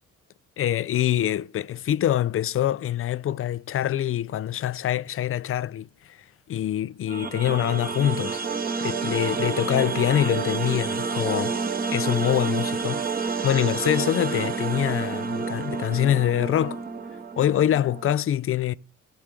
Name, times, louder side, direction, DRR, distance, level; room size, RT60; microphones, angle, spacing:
voice 1, 0.6-6.2 6.5-8.4 8.8-11.6 11.9-13.0 13.4-16.8 17.4-18.7, left 11 dB, 50° left, 0.4 m, -25 dB
sound 1, 7.1-18.1, right 5 dB, 30° right, 1.1 m, -29 dB
12.0 x 4.6 x 6.7 m
cardioid pair, 90°, 30 cm